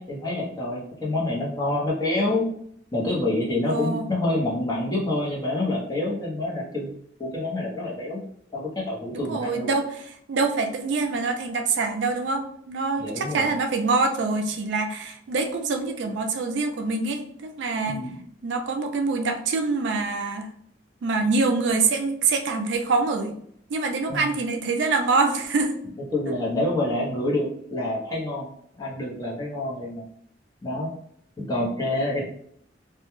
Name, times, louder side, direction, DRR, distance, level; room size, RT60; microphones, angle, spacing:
voice 1, 0.0-2.5 2.9-6.9 7.2-8.2 8.5-9.7 13.0-13.5 17.9-18.2 24.1-24.3 26.0-28.5 28.8-30.0 30.6-30.9 31.4-32.2, left 2 dB, 20° left, -5 dB, 0.6 m, -27 dB
voice 2, 3.7-4.0 9.1-9.9 10.3-18.0 18.4-20.5 21.0-23.4 23.7-25.7, right 3 dB, 75° right, 4 dB, 0.4 m, -25 dB
2.2 x 2.1 x 3.0 m, 0.67 s
head